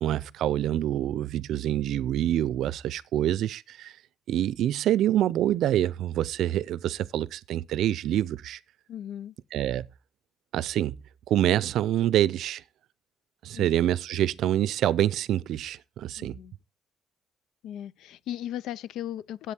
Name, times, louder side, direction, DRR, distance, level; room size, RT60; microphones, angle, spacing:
voice 1, 0.0-3.9 4.3-8.6 9.5-9.9 10.5-11.0 11.3-12.6 13.4-16.3, right 12 dB, 80° right, 0.5 m, -26 dB
voice 2, 8.9-9.3 13.5-13.7 16.2-16.6 17.6-19.5, left 11 dB, 85° left, 0.5 m, -37 dB
10.0 x 8.0 x 4.4 m
cardioid pair, 90°, 0 cm